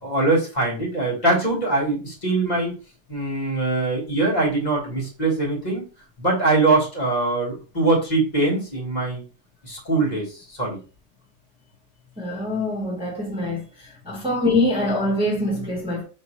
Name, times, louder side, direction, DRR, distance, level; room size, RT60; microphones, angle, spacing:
voice 1, 0.0-2.7 3.1-5.8 6.2-9.2 9.6-10.8, right 2 dB, 40° left, 1.5 m, -22 dB
voice 2, 12.2-13.6 14.1-16.0, left 1 dB, 5° right, 1.0 m, -24 dB
5.3 x 2.9 x 3.0 m
omnidirectional pair, 1.2 m